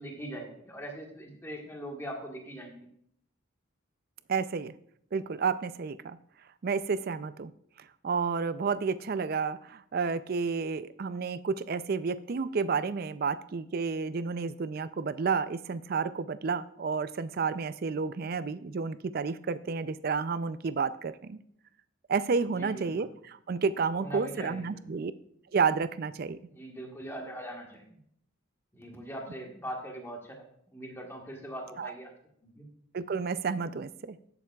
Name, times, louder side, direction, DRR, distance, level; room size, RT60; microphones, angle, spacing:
voice 1, 0.0-2.9 22.6-23.1 24.0-24.8 26.4-28.0 28.7-30.4 30.7-32.1 32.4-32.7, right 1 dB, 10° left, 0 dB, 1.4 m, -41 dB
voice 2, 4.3-4.7 5.1-6.2 6.6-7.5 8.0-21.4 22.1-25.1 25.5-26.4 31.8-31.9 32.9-34.2, right 5 dB, 45° right, 14 dB, 0.4 m, -31 dB
18.5 x 7.0 x 2.3 m, 0.68 s
head